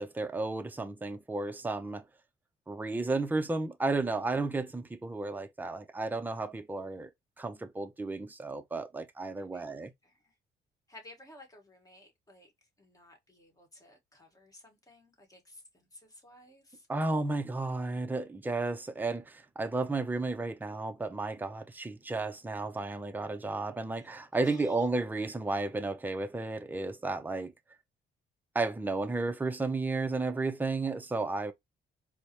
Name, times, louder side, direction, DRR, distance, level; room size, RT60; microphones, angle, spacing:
voice 1, 0.0-2.0 2.7-7.1 7.4-9.9 16.9-27.5 28.5-31.5, right 3 dB, 10° right, 0.5 m, -33 dB
voice 2, 9.4-10.2 10.9-12.5 12.8-16.9 23.9-24.1 24.4-24.8, left 1 dB, 20° left, 1.4 m, -56 dB
4.4 x 2.1 x 2.9 m
cardioid pair, 90°, 20 cm